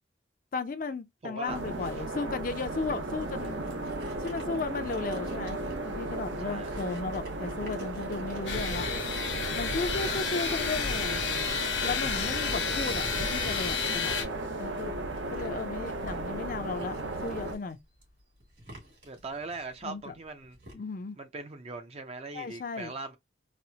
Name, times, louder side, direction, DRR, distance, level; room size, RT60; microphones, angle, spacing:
voice 1, 0.5-3.6 4.2-8.9 9.3-11.2 11.8-14.2 14.6-15.0 15.3-17.0 17.2-17.8 19.8-20.1 20.7-21.2 22.3-22.9, left 3 dB, 45° left, 0.4 m, -35 dB
voice 2, 1.2-1.6 6.4-6.7 8.5-8.9 19.0-20.6 21.2-23.2, right 3 dB, 35° right, 0.4 m, -40 dB
sound 1, 1.5-17.6, right 2 dB, 90° right, 0.8 m, -35 dB
sound 2, 2.6-20.7, right 1 dB, 75° right, 2.4 m, -52 dB
sound 3, 8.5-14.2, left 6 dB, 80° left, 0.8 m, -31 dB
4.1 x 2.0 x 2.7 m
head